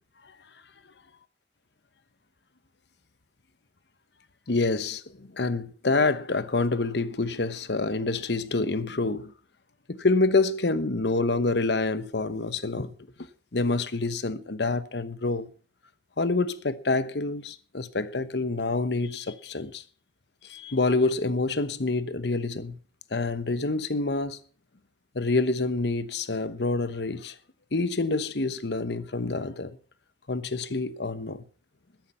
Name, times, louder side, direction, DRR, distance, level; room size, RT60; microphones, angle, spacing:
voice 1, 4.5-9.3 9.9-12.9 13.5-15.5 16.2-19.8 20.4-22.8 23.1-24.4 25.1-27.4 27.7-29.8 30.3-31.4, left 3 dB, 75° left, 1.0 m, -27 dB
13.0 x 10.5 x 5.7 m
head